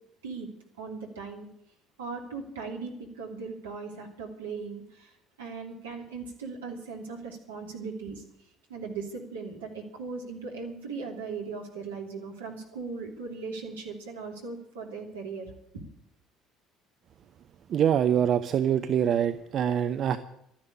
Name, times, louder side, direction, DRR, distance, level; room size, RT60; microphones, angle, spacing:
voice 1, 0.8-1.5 2.0-8.2 8.7-15.8, right 4 dB, 75° right, 1 dB, 3.0 m, -38 dB
voice 2, 17.7-20.2, right 9 dB, 45° right, 10 dB, 0.8 m, -24 dB
13.0 x 10.5 x 8.6 m, 0.76 s
figure-of-eight pair, 55°, 0 cm